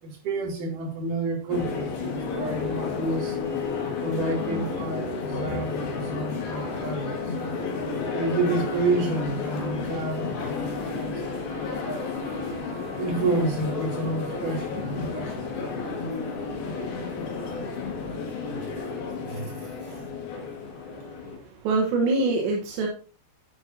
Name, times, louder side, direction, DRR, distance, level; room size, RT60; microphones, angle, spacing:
voice 1, 0.0-3.4 4.0-7.3 8.1-12.1 13.0-15.8 18.3-18.9 19.2-20.1, right 2 dB, 50° right, -1 dB, 3.8 m, -30 dB
sound 1, 1.5-21.4, left 4 dB, 60° left, 3.4 m, -31 dB
voice 2, 20.3-22.9, right 3 dB, 75° right, 1 dB, 3.3 m, -27 dB
11.0 x 9.2 x 2.7 m, 0.37 s
omnidirectional pair, 5.3 m